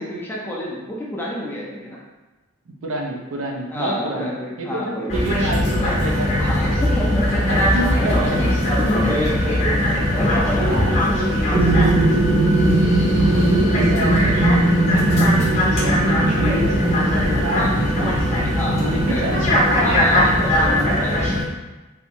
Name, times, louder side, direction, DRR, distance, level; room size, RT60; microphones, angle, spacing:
voice 1, 0.0-2.0 3.7-5.2 6.4-7.5 8.0-8.5 8.8-9.8 10.1-12.0 17.5-17.7 18.5-19.2 19.8-21.4, equal, 10° left, -5 dB, 0.6 m, -28 dB
voice 2, 2.8-6.7 7.3-8.4 10.6-11.0 13.2-16.8 17.2-18.3 18.7-19.9 20.6-21.0, right 1 dB, 80° right, 1 dB, 0.5 m, -29 dB
sound 1, 5.1-21.4, left 1 dB, 35° left, 1.0 m, -20 dB
sound 2, 11.5-20.6, right 2 dB, 45° right, 0.7 m, -21 dB
3.4 x 3.0 x 2.6 m, 1.1 s
head